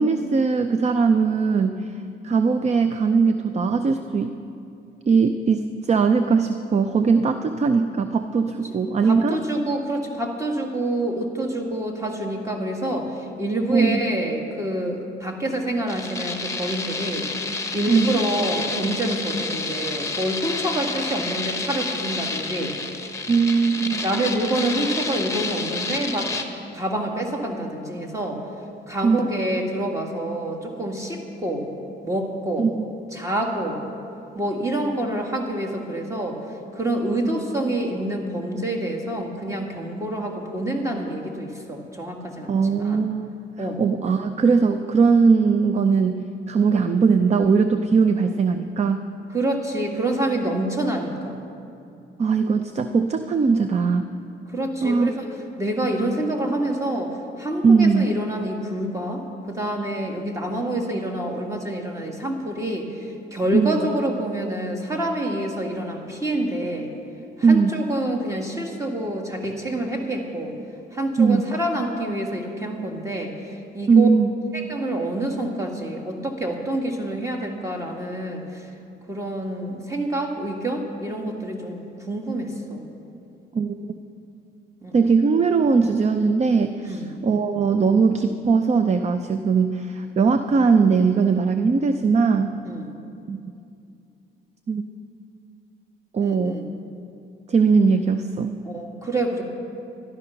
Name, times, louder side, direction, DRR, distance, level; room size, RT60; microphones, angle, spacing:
voice 1, 0.0-1.9 2.2-4.4 5.1-9.4 13.7-14.0 17.9-18.2 23.3-24.0 29.0-29.2 32.6-32.7 42.5-43.3 43.8-49.1 52.2-54.1 54.8-55.1 57.6-58.1 63.5-63.7 67.4-67.7 71.2-71.4 73.9-74.3 83.5-83.8 84.9-92.5 93.3-93.4 94.7-94.8 96.1-96.5 97.5-98.5, right 5 dB, 35° right, 9 dB, 0.5 m, -20 dB
voice 2, 9.0-17.2 17.7-22.8 24.0-26.3 26.7-28.4 28.9-31.7 32.0-32.7 33.1-33.8 34.4-36.4 36.7-43.0 43.6-43.8 49.3-51.4 54.5-55.3 55.6-66.9 67.4-70.5 70.9-74.1 74.5-78.7 79.1-82.9 84.8-85.1 86.8-87.1 92.6-92.9 96.2-96.6 98.6-99.4, right 1 dB, 15° right, 1 dB, 2.0 m, -27 dB
sound 1, 15.9-26.4, left 3 dB, 15° left, 1.2 m, -29 dB
12.5 x 12.0 x 5.8 m, 2.6 s
cardioid pair, 90°, 20 cm